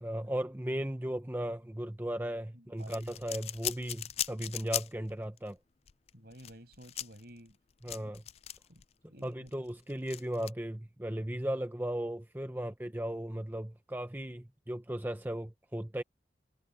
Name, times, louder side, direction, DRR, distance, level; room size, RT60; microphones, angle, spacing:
voice 1, 0.0-5.6 7.8-8.2 9.2-16.0, right 1 dB, 10° right, 0.7 m, -36 dB
voice 2, 2.5-3.3 6.1-7.6 8.0-8.1 8.7-8.8 9.1-9.5 12.5-12.6, right 1 dB, 55° right, 6.7 m, -53 dB
sound 1, 2.8-5.1 5.4-5.5 5.9-8.8 9.2-10.5, left 12 dB, 35° left, 0.3 m, -39 dB
head